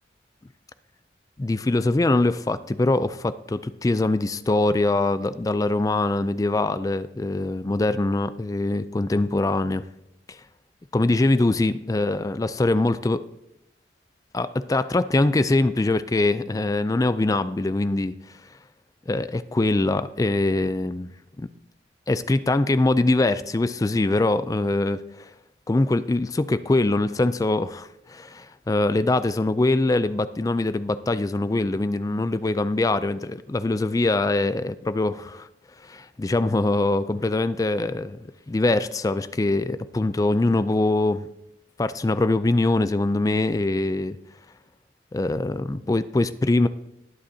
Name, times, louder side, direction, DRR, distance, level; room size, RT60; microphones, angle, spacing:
voice 1, 1.4-9.8 10.9-13.2 14.3-18.1 19.1-21.1 21.4-21.5 22.1-25.3 25.7-35.5 35.8-38.2 38.5-41.3 41.8-44.2 45.1-46.7, left 2 dB, 20° left, 14 dB, 0.3 m, -23 dB
20.0 x 7.8 x 2.8 m, 0.83 s
head